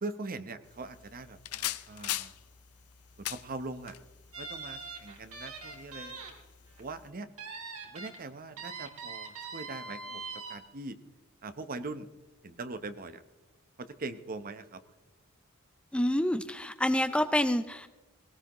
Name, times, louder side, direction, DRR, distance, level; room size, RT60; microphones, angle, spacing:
voice 1, 0.0-2.3 3.3-4.0 4.4-6.2 6.8-7.3 7.9-11.0 11.4-12.1 12.4-13.2 13.8-14.8, right 3 dB, 40° right, 11 dB, 0.8 m, -41 dB
sound 1, 0.6-7.1, left 13 dB, 80° left, 0.6 m, -42 dB
sound 2, 4.3-6.3 6.7-6.8 7.4-8.1 8.6-10.6, right 4 dB, 80° right, 3.7 m, -42 dB
voice 2, 15.9-17.9, left 1 dB, 5° left, 9 dB, 0.4 m, -27 dB
20.0 x 18.0 x 3.0 m, 1.1 s
head